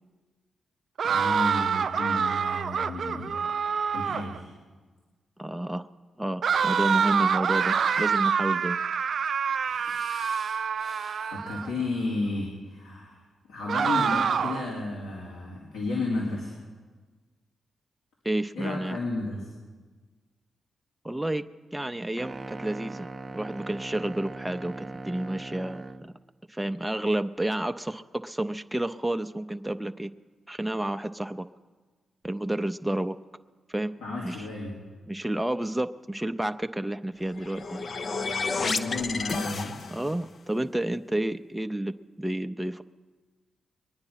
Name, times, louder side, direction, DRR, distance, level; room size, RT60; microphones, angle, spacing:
voice 1, 1.0-3.4 3.9-4.5 9.6-13.2 13.5-16.5 18.5-19.5 34.0-34.8 38.6-39.8, left 2 dB, 85° left, -4 dB, 3.0 m, -33 dB
sound 1, 1.0-4.4 6.4-11.7 13.7-14.7, right 6 dB, 65° right, 0.4 m, -26 dB
voice 2, 5.4-5.8 6.2-8.8 18.2-19.0 21.0-21.5 21.7-26.1 26.5-30.1 30.5-31.5 32.2-33.2 33.7-34.0 34.2-34.5 35.1-37.9 39.9-42.8, right 1 dB, 10° right, 7 dB, 0.6 m, -30 dB
sound 2, 22.2-26.1, right 2 dB, 35° right, 0.8 m, -40 dB
sound 3, 37.2-40.2, left 4 dB, 55° left, 0.8 m, -31 dB
22.0 x 9.8 x 5.8 m, 1.4 s
hypercardioid pair, 40°, 0 cm